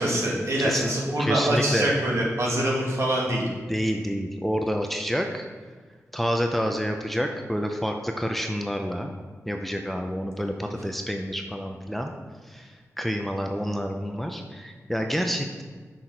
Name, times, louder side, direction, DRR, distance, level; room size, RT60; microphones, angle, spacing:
voice 1, 0.0-3.4 10.7-10.8, right 1 dB, 60° right, -4 dB, 2.0 m, -24 dB
voice 2, 0.6-0.9 1.2-1.9 3.7-5.5 6.1-9.1 9.5-12.1 12.5-15.6, equal, 5° left, 3 dB, 0.6 m, -28 dB
6.2 x 5.9 x 4.6 m, 1.5 s
wide cardioid pair, 75°, 6 cm